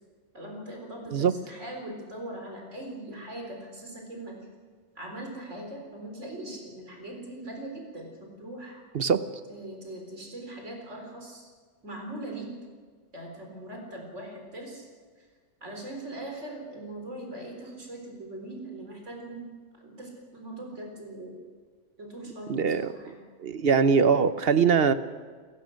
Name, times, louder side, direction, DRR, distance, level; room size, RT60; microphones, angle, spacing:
voice 1, 0.3-4.4 5.0-8.8 9.5-11.5 11.8-12.5 13.1-14.9 15.2-15.3 15.6-21.4 22.0-23.2, right 1 dB, 80° right, 1 dB, 4.5 m, -41 dB
voice 2, 8.9-9.3 22.5-22.9 23.4-24.9, right 6 dB, 60° right, 12 dB, 1.0 m, -22 dB
29.0 x 15.0 x 6.5 m, 1.6 s
omnidirectional pair, 1.2 m